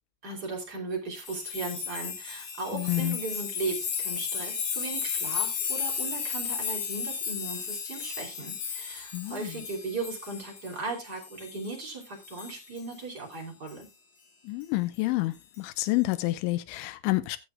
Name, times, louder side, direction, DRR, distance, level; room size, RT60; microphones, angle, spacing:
voice 1, 0.2-13.9, right 3 dB, 25° right, 2.7 m, -37 dB
sound 1, 1.2-11.9 12.2-13.2 13.7-13.8 15.5-15.8, left 6 dB, 50° left, 3.5 m, -34 dB
voice 2, 2.7-3.2 9.1-9.6 14.5-17.4, left 19 dB, 80° left, 3.1 m, -29 dB
20.0 x 7.2 x 2.3 m
omnidirectional pair, 5.8 m